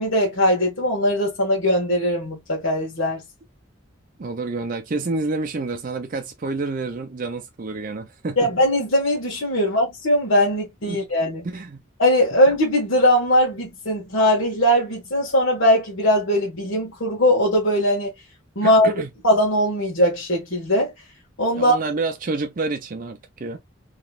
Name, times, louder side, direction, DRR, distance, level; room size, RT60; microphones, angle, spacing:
voice 1, 0.0-3.2 8.4-11.4 12.0-18.1 18.5-18.9 19.2-20.9 21.4-21.8, equal, 75° left, 1.5 m, -20 dB
voice 2, 4.2-8.5 10.9-11.0 11.4-11.8 18.6-19.1 21.5-23.6, right 3 dB, 40° right, 0.5 m, -28 dB
3.9 x 3.1 x 2.3 m
head